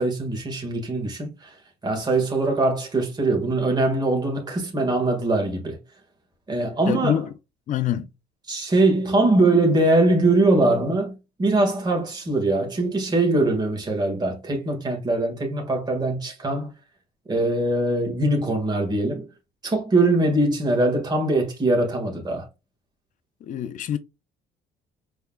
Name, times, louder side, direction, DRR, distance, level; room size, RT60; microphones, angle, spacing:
voice 1, 0.0-1.5 1.8-5.8 6.5-7.2 8.5-11.1 11.4-16.7 17.3-19.3 19.6-22.4, right 2 dB, 25° right, 1.8 m, -22 dB
voice 2, 6.9-7.3 7.7-8.1 23.4-24.0, left 10 dB, 50° left, 0.5 m, -25 dB
5.7 x 3.5 x 2.3 m
cardioid pair, 110°, 17 cm